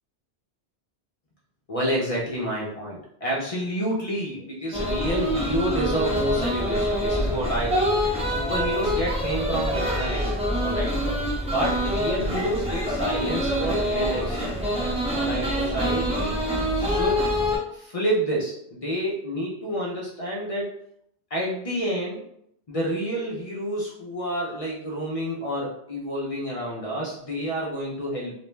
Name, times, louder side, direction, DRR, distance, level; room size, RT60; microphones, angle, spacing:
voice 1, 1.7-7.9 8.2-10.9 11.4-14.6 15.1-16.4 16.8-17.3 17.7-20.7 21.3-22.2 22.7-28.3, equal, 45° left, -4 dB, 0.5 m, -29 dB
sound 1, 4.7-17.6, equal, 10° right, 0.4 m, -25 dB
2.5 x 2.1 x 3.1 m, 0.73 s
omnidirectional pair, 1.1 m